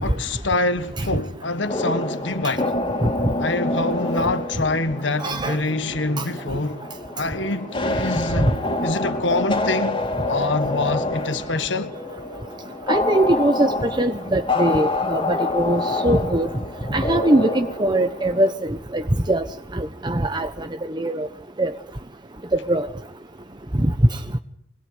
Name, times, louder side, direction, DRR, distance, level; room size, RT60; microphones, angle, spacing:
voice 1, 0.0-2.7 3.4-6.8 7.1-8.6 8.8-11.9, left 2 dB, 75° left, 1.6 m, -25 dB
sound 1, 1.6-18.5, left 2 dB, 25° left, 3.2 m, -27 dB
voice 2, 5.2-5.6 8.4-8.5 12.9-16.5 16.9-19.0 19.3-19.4 19.7-20.5 20.9-21.3 21.6-21.7 22.7-22.9 23.8-23.9, right 1 dB, 25° right, 1.1 m, -21 dB
25.5 x 21.0 x 9.8 m
head